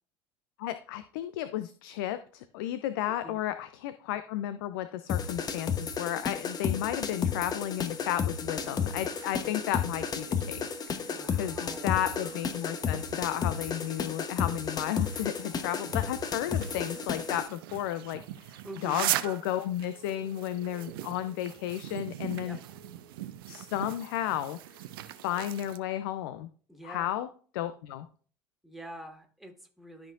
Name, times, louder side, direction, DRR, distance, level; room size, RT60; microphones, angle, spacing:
voice 1, 0.6-22.6 23.5-24.6 25.2-26.5 26.8-27.3 27.5-28.1, left 12 dB, 65° left, 12 dB, 0.5 m, -33 dB
voice 2, 3.1-3.4 11.1-12.0 18.6-19.1 22.4-22.8 26.7-27.1 28.6-30.1, right 1 dB, ahead, 3 dB, 1.9 m, -46 dB
sound 1, 5.1-17.5, left 6 dB, 30° left, 1.0 m, -33 dB
sound 2, 8.3-25.8, right 13 dB, 70° right, 0.6 m, -41 dB
12.5 x 5.8 x 2.6 m, 0.43 s
figure-of-eight pair, 70°, 12 cm